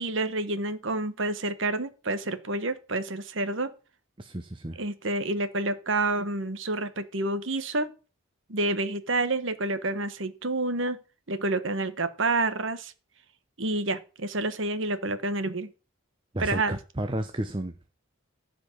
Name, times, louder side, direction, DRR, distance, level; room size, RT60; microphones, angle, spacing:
voice 1, 0.0-3.7 4.8-7.9 8.5-11.0 11.3-12.9 13.6-15.7 16.4-16.8, right 2 dB, 65° right, 1.3 m, -28 dB
voice 2, 4.2-4.8 16.3-17.7, right 1 dB, 25° right, 0.8 m, -32 dB
14.0 x 5.1 x 7.3 m
head